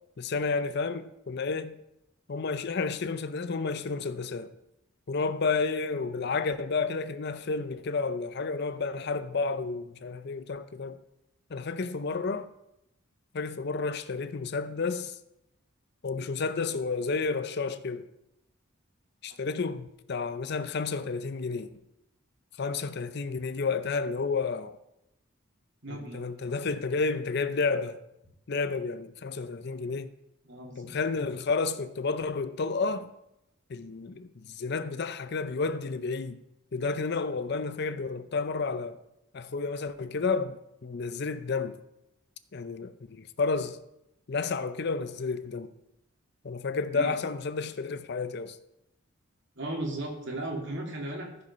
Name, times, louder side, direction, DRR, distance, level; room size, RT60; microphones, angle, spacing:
voice 1, 0.2-1.8 2.3-4.5 5.1-11.0 11.5-12.5 13.3-15.2 16.0-18.1 19.2-21.7 22.6-24.8 25.9-28.0 28.5-30.1 30.8-33.1 33.7-36.4 36.7-39.0 39.3-41.8 42.5-43.8 44.3-45.7 46.4-48.6, left 4 dB, 50° left, 0.5 m, -31 dB
voice 2, 25.8-26.2 30.5-30.9 46.9-47.2 49.6-51.4, right 1 dB, 60° right, 2.7 m, -36 dB
14.5 x 5.3 x 5.5 m
head